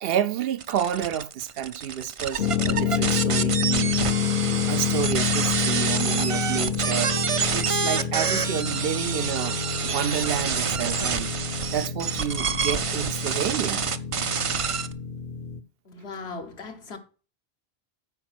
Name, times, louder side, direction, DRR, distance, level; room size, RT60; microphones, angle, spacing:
voice 1, 0.0-4.0 4.7-13.9, right 9 dB, 70° right, 0.8 m, -30 dB
sound 1, 0.6-14.9, right 6 dB, 45° right, 0.4 m, -28 dB
sound 2, 2.4-15.6, left 7 dB, 60° left, 0.8 m, -28 dB
voice 2, 15.9-17.0, left 4 dB, 85° left, 1.6 m, -38 dB
9.0 x 5.0 x 6.1 m
omnidirectional pair, 1.1 m